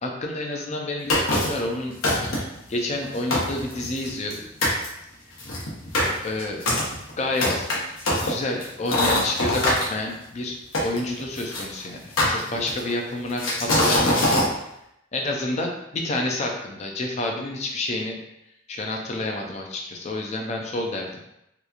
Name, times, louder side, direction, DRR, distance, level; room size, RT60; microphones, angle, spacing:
voice 1, 0.0-1.9 2.7-4.4 6.2-6.6 7.2-7.6 8.2-14.4 15.1-18.2 18.7-21.1, left 2 dB, 35° left, 2 dB, 0.4 m, -29 dB
sound 1, 1.1-1.6 2.0-2.6 3.0-3.1 3.3-4.3 4.6-4.9 5.4-9.9 10.7-11.6 12.2-12.9 13.4-14.5, left 1 dB, 90° left, 0.8 m, -23 dB
2.9 x 2.3 x 2.4 m, 0.82 s
head